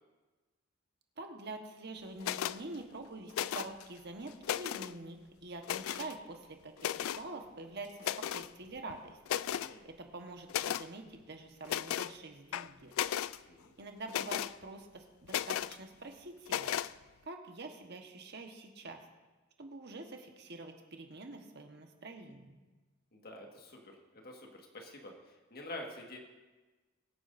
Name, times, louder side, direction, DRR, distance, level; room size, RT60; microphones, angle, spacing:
voice 1, 1.2-9.2 9.8-12.9 13.8-16.7 17.2-19.0 19.6-22.6, right 2 dB, 55° right, 4 dB, 1.3 m, -46 dB
sound 1, 2.2-2.6 3.3-3.8 4.3-4.9 5.6-6.1 6.8-7.2 8.0-8.5 8.9-9.0 9.2-9.7 10.5-10.9 11.6-12.1 12.5-13.4 14.1-14.5 15.3-15.8 16.5-16.9, left 11 dB, 85° left, 0.3 m, -35 dB
voice 2, 9.4-9.9 13.5-13.7 23.1-26.2, left 1 dB, 50° left, 1 dB, 1.7 m, -48 dB
23.0 x 9.4 x 2.6 m, 1.2 s
head